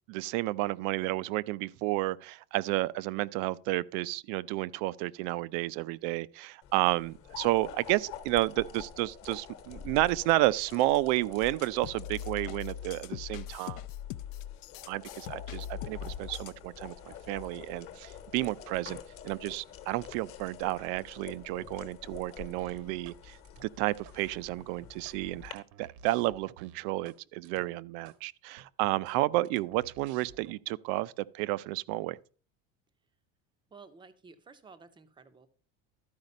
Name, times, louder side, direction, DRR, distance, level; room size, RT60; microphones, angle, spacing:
voice 1, 0.1-13.8 14.9-19.0 19.2-32.2, right 18 dB, 85° right, 0.5 m, -31 dB
sound 1, 6.6-25.5, left 8 dB, 40° left, 1.1 m, -48 dB
sound 2, 11.4-16.6, left 10 dB, 75° left, 0.5 m, -41 dB
sound 3, 22.6-23.2 23.4-24.2 24.6-27.2 27.4-27.6 28.0-28.2 28.6-30.5, right 8 dB, 55° right, 0.8 m, -54 dB
voice 2, 33.7-35.5, right 4 dB, 15° right, 0.5 m, -53 dB
12.5 x 5.0 x 5.2 m
cardioid pair, 180°, 36 cm